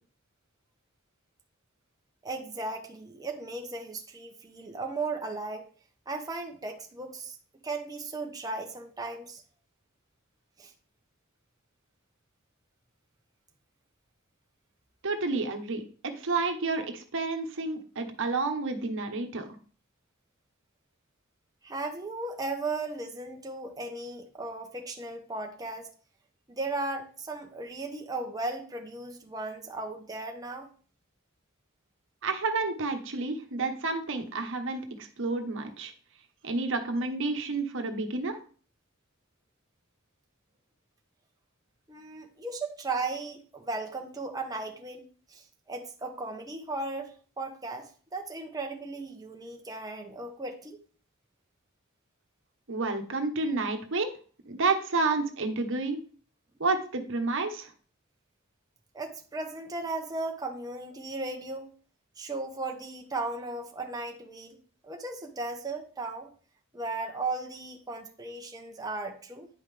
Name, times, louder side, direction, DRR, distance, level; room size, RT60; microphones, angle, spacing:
voice 1, 2.2-5.7 6.1-7.4 7.6-9.4 10.6-10.7 21.6-25.9 26.5-30.7 41.9-50.8 58.9-61.7 62.2-64.6 64.8-66.3 66.7-69.5, right 3 dB, 20° right, 2 dB, 0.9 m, -36 dB
voice 2, 15.0-19.5 32.2-35.9 36.4-38.4 52.7-54.1 54.5-56.0 56.6-57.7, right 3 dB, 65° right, 5 dB, 1.1 m, -30 dB
9.6 x 5.6 x 3.3 m, 0.41 s
head